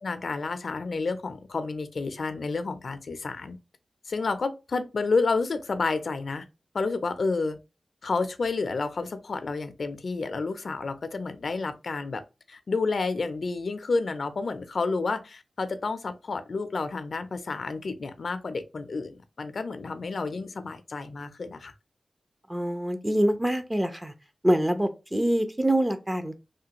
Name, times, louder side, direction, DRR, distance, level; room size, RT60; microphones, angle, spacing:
voice 1, 0.0-3.6 4.1-6.4 6.7-7.6 8.0-12.2 12.5-21.7, left 4 dB, 70° left, 0.4 m, -30 dB
voice 2, 22.5-24.1 24.4-26.4, right 1 dB, 15° right, 0.6 m, -25 dB
3.2 x 2.2 x 2.9 m
cardioid pair, 55°, 0 cm